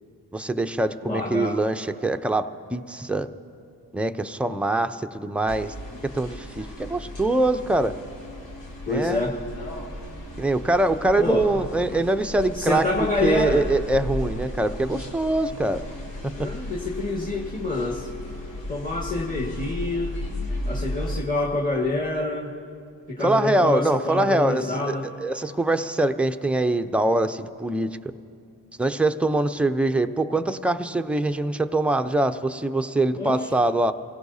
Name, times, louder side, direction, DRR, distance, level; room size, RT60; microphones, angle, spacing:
voice 1, 0.3-3.3 3.9-5.7 6.1-8.0 8.9-9.2 10.4-15.8 23.2-27.9 28.8-33.9, right 2 dB, 5° right, 8 dB, 0.6 m, -23 dB
voice 2, 1.0-1.6 8.9-9.4 11.2-11.5 12.5-13.7 16.4-18.1 18.7-20.2 20.7-22.5 23.1-25.1 33.2-33.5, left 2 dB, 20° left, -1 dB, 1.8 m, -27 dB
sound 1, 5.5-21.2, left 1 dB, 90° left, 1.9 m, -35 dB
27.0 x 16.5 x 2.7 m, 2.4 s
supercardioid pair, 45°, 44 cm